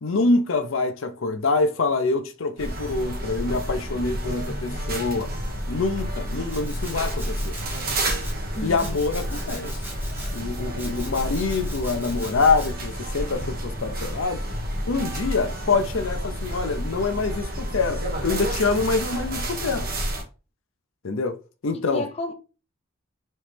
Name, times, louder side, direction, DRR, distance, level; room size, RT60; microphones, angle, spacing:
voice 1, 0.0-5.3 5.7-7.6 8.6-9.7 10.3-14.4 14.9-19.9 21.0-21.4 21.6-22.0, left 3 dB, 70° left, 0.7 m, -25 dB
sound 1, 2.6-20.2, equal, 50° right, 1.3 m, -30 dB
Domestic sounds home sounds, 6.5-8.4 8.8-10.4 10.8-12.7, right 1 dB, 10° right, 1.2 m, -41 dB
voice 2, 8.6-9.0 21.7-22.3, left 2 dB, 30° left, 0.5 m, -32 dB
4.3 x 3.1 x 3.4 m
head